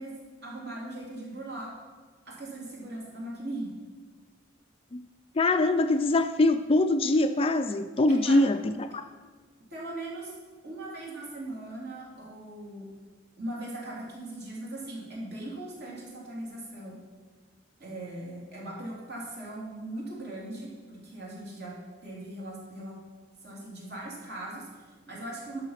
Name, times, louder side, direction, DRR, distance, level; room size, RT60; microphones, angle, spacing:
voice 1, 0.0-1.7 2.2-3.7 8.1-8.4 9.7-10.3 10.6-12.9 13.4-17.0 17.8-22.9 23.4-25.6, right 1 dB, 55° right, -4 dB, 3.4 m, -39 dB
voice 2, 5.3-9.0, left 2 dB, 30° left, 9 dB, 0.4 m, -23 dB
11.5 x 6.6 x 5.8 m, 1.4 s
head